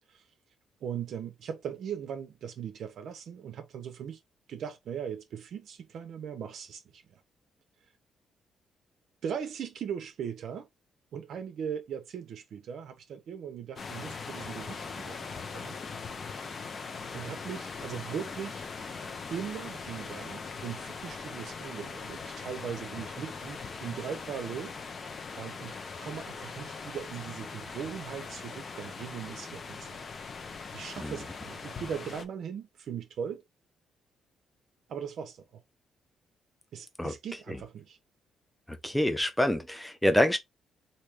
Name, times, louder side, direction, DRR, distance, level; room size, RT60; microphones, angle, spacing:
voice 1, 0.8-4.2 4.5-7.2 9.2-10.7 11.1-15.8 17.1-18.6 19.3-24.7 25.3-30.0 30.7-33.4 34.9-35.6 36.7-38.0, right 8 dB, 70° right, 0.5 m, -39 dB
sound 1, 13.8-32.3, left 5 dB, 40° left, 0.6 m, -41 dB
voice 2, 38.7-40.4, left 1 dB, 5° left, 0.6 m, -26 dB
3.0 x 2.6 x 3.3 m
cardioid pair, 90°, 0 cm